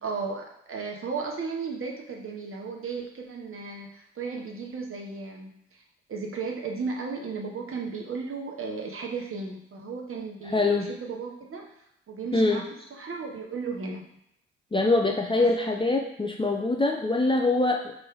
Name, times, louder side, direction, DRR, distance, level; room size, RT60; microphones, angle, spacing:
voice 1, 0.0-5.8 6.1-11.7 12.1-14.0 15.4-15.5, right 4 dB, 40° right, 0 dB, 1.1 m, -35 dB
voice 2, 10.5-10.9 12.3-12.6 14.7-17.9, left 2 dB, 15° left, 2 dB, 0.5 m, -24 dB
4.3 x 2.6 x 3.5 m, 0.78 s
hypercardioid pair, 40°, 32 cm